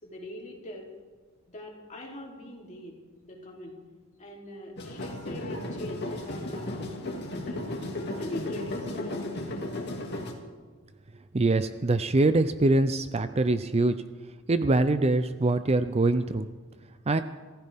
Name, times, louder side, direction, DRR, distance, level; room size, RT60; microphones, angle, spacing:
voice 1, 0.0-0.9 1.5-3.0 3.2-3.8 4.2-7.8 8.2-9.8, left 1 dB, 35° left, -1 dB, 3.4 m, -42 dB
sound 1, 4.8-10.3, left 1 dB, 50° left, 2.4 m, -35 dB
voice 2, 11.3-14.0 14.5-16.5 17.1-17.2, right 2 dB, 30° right, 11 dB, 0.5 m, -24 dB
26.0 x 15.0 x 3.6 m, 1.4 s
head